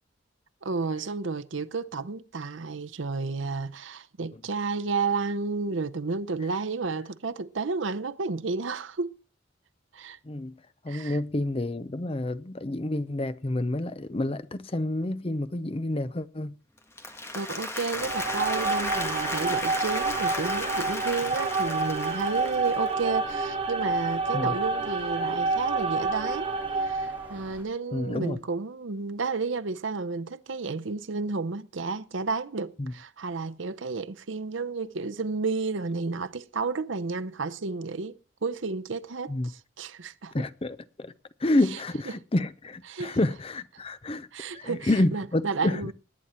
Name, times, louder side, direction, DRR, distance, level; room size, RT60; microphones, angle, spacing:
voice 1, 0.6-9.1 9.9-10.2 10.9-11.2 17.3-26.5 26.8-40.3 41.7-41.8 42.1-42.2 42.9-43.2 44.3-45.9, right 4 dB, 75° right, 0.7 m, -32 dB
voice 2, 10.2-10.6 10.8-16.6 24.3-24.6 27.9-28.4 32.8-32.9 39.3-39.5 40.3-41.1 41.4-44.3 44.5-45.8, left 1 dB, 30° left, 0.6 m, -29 dB
Applause, 16.8-23.0, left 2 dB, 15° left, 1.6 m, -34 dB
sound 1, 17.9-27.6, right 1 dB, 10° right, 3.1 m, -48 dB
sound 2, 18.0-27.4, right 3 dB, 30° right, 3.0 m, -29 dB
19.5 x 8.9 x 4.4 m
head